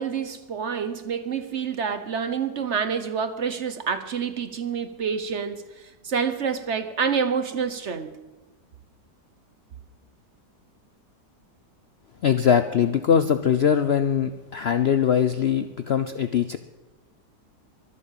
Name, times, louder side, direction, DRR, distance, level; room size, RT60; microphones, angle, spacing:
voice 1, 0.0-5.6 6.0-8.2, right 6 dB, 50° right, 1.0 m, -27 dB
voice 2, 12.2-16.6, left 8 dB, 60° left, 0.6 m, -21 dB
23.0 x 8.4 x 7.4 m
omnidirectional pair, 1.7 m